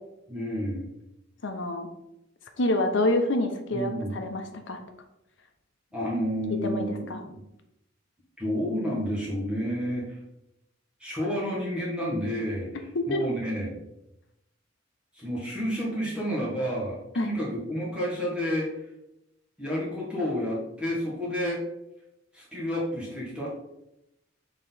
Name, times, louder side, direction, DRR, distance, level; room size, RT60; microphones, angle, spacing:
voice 1, 0.3-0.9 3.7-4.2 5.9-7.4 8.4-10.2 11.0-13.7 15.1-18.7 19.6-21.6 22.3-23.5, equal, 5° right, -6 dB, 1.6 m, -30 dB
voice 2, 1.4-1.9 2.6-4.8 6.5-7.2 12.9-13.2 17.2-17.3, left 1 dB, 70° left, 5 dB, 0.9 m, -27 dB
4.9 x 3.9 x 5.6 m, 0.87 s
head